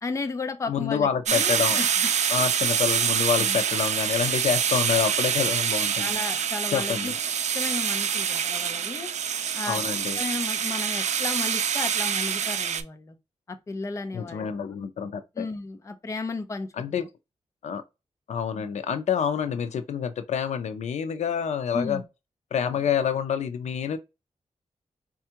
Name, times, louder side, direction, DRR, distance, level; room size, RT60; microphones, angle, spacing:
voice 1, 0.0-1.9 3.4-3.6 4.9-5.1 6.0-7.1 7.5-9.1 9.5-9.8 10.1-13.2 13.5-14.5 15.4-17.1 18.5-18.6 21.7-22.0, left 3 dB, 25° left, 0.5 m, -34 dB
voice 2, 0.7-1.8 2.3-6.1 6.7-7.2 9.7-10.2 14.1-15.5 16.8-17.1 17.6-17.8 18.3-22.0 22.5-24.0, left 7 dB, 80° left, 0.5 m, -27 dB
sound 1, 1.3-12.8, right 8 dB, 80° right, 0.4 m, -26 dB
4.3 x 2.3 x 2.8 m
wide cardioid pair, 155°, 12 cm